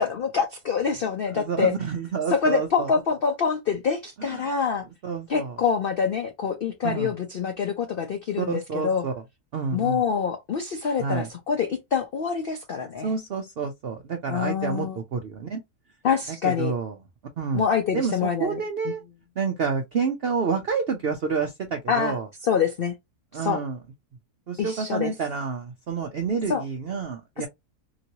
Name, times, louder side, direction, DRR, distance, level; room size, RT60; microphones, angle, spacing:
voice 1, 0.0-1.7 2.3-4.8 5.3-9.0 9.7-13.1 14.3-15.0 16.0-16.7 17.5-18.6 21.9-22.2 22.4-22.9 23.3-23.6 24.6-25.1 26.5-26.6, left 6 dB, 80° left, 0.5 m, -25 dB
voice 2, 1.3-2.9 4.2-4.5 5.0-5.6 6.8-7.1 8.4-9.1 9.5-10.0 11.0-11.3 13.0-15.6 16.4-17.0 17.4-17.6 17.9-19.0 19.4-22.3 23.3-23.8 24.5-27.5, right 5 dB, 65° right, 0.6 m, -28 dB
3.0 x 2.7 x 2.8 m
omnidirectional pair, 1.7 m